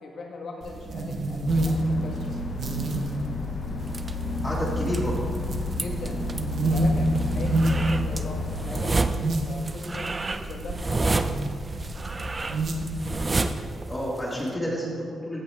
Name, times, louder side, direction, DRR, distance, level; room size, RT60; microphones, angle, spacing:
voice 1, 0.0-2.3 5.7-6.3 6.7-9.0 9.4-11.2, left 3 dB, 60° left, 1 dB, 1.4 m, -39 dB
sound 1, 0.6-13.5, right 2 dB, 55° right, 0.9 m, -29 dB
sound 2, 1.5-9.0, left 3 dB, 40° left, 0.7 m, -31 dB
sound 3, 3.8-14.5, right 3 dB, 25° right, 0.4 m, -31 dB
voice 2, 4.4-5.1 13.9-15.4, equal, 15° left, -5 dB, 2.0 m, -30 dB
15.5 x 5.3 x 3.4 m, 2.2 s
cardioid pair, 130°, 0 cm